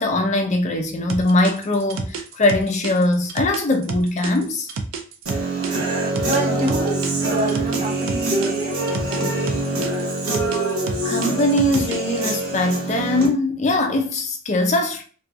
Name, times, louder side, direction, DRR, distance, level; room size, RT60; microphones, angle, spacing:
voice 1, 0.0-4.7 11.0-15.0, left 1 dB, 35° left, 0.4 m, -21 dB
sound 1, 1.1-5.7 6.2-9.2 9.5-12.2, right 4 dB, 70° right, 0.4 m, -29 dB
Human voice / Guitar, 5.3-13.3, right 2 dB, 85° right, 0.9 m, -24 dB
voice 2, 6.2-7.0 7.3-9.3, right 1 dB, 30° right, 0.7 m, -27 dB
2.4 x 2.3 x 2.6 m
head